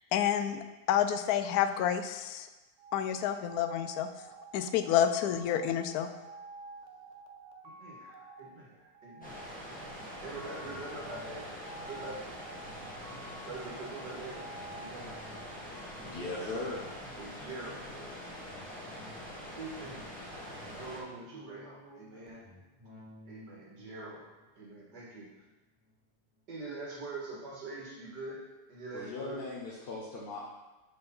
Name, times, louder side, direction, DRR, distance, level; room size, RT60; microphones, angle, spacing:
voice 1, 0.1-2.5 2.9-4.1 4.5-6.1, left 10 dB, 70° left, 9 dB, 1.0 m, -29 dB
sound 1, 2.8-17.2, right 3 dB, 60° right, 0.9 m, -50 dB
voice 2, 7.6-11.5 11.8-12.3 13.4-14.4 14.8-15.2 16.0-16.6 17.2-17.9 19.5-20.2 20.8-22.4 23.3-24.3 24.6-25.3 26.5-29.5, right 2 dB, 90° right, -4 dB, 2.4 m, -44 dB
sound 2, 9.2-21.0, left 1 dB, 5° left, 1.4 m, -44 dB
sound 3, 10.6-26.4 26.8-26.9, equal, 15° right, 1.1 m, -57 dB
voice 3, 16.1-16.8 28.9-30.5, left 2 dB, 40° left, -5 dB, 1.0 m, -38 dB
6.6 x 4.6 x 5.4 m, 1.1 s
omnidirectional pair, 1.8 m